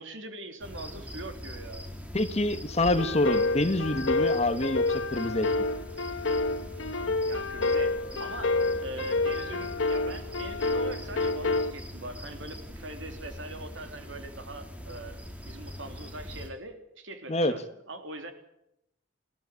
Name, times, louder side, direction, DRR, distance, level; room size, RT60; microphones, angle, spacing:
voice 1, 0.0-1.9 7.3-8.5 8.8-17.6 17.9-18.3, right 1 dB, 75° right, 7 dB, 3.4 m, -42 dB
sound 1, 0.6-16.5, equal, 5° right, 2.9 m, -42 dB
voice 2, 2.1-5.5 17.3-17.5, left 1 dB, 35° left, 10 dB, 1.5 m, -26 dB
sound 2, 3.0-11.7, left 3 dB, 80° left, 1.3 m, -28 dB
21.0 x 16.5 x 8.6 m, 0.80 s
head